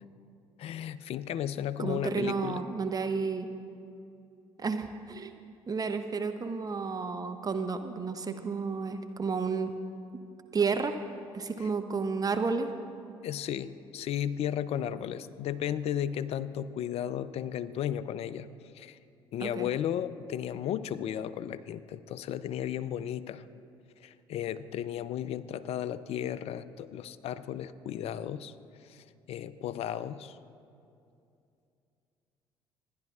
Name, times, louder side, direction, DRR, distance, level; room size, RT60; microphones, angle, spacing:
voice 1, 0.6-2.6 11.6-11.7 13.2-18.5 18.7-19.0 19.3-23.4 24.0-28.5 28.8-30.4, left 10 dB, 50° left, 15 dB, 0.5 m, -34 dB
voice 2, 1.8-3.5 4.6-5.3 5.7-9.7 10.5-11.0 11.3-12.7 19.4-19.7, right 5 dB, 30° right, 7 dB, 0.8 m, -31 dB
27.0 x 10.5 x 2.4 m, 2.5 s
hypercardioid pair, 55°, 13 cm